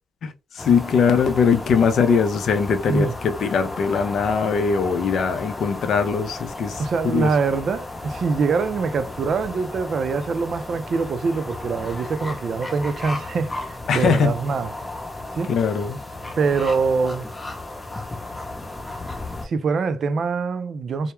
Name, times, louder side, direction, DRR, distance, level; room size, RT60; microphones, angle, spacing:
voice 1, 0.2-7.3 13.9-14.3 15.5-16.0, left 6 dB, 65° left, 0.5 m, -21 dB
sound 1, 0.6-19.5, left 2 dB, 20° left, 0.7 m, -34 dB
voice 2, 6.8-14.7 15.4-15.5 16.4-17.3 19.4-21.1, right 4 dB, 50° right, 0.4 m, -24 dB
2.2 x 2.0 x 2.9 m
cardioid pair, 90°, 0 cm